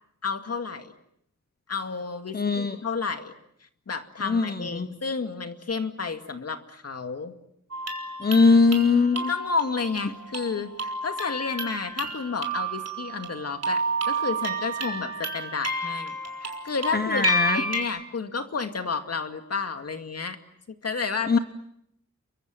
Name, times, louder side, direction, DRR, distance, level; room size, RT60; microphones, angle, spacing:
voice 1, 0.2-0.9 1.7-3.3 3.9-7.3 9.1-20.4 20.8-21.4, left 5 dB, 55° left, 7 dB, 2.3 m, -31 dB
voice 2, 2.3-2.8 4.2-4.9 8.2-9.3 16.9-17.6 21.3-21.4, left 4 dB, 30° left, 10 dB, 1.0 m, -21 dB
sound 1, 7.7-17.8, right 2 dB, 55° right, 4.1 m, -31 dB
30.0 x 24.0 x 7.8 m, 0.75 s
wide cardioid pair, 155°, 30 cm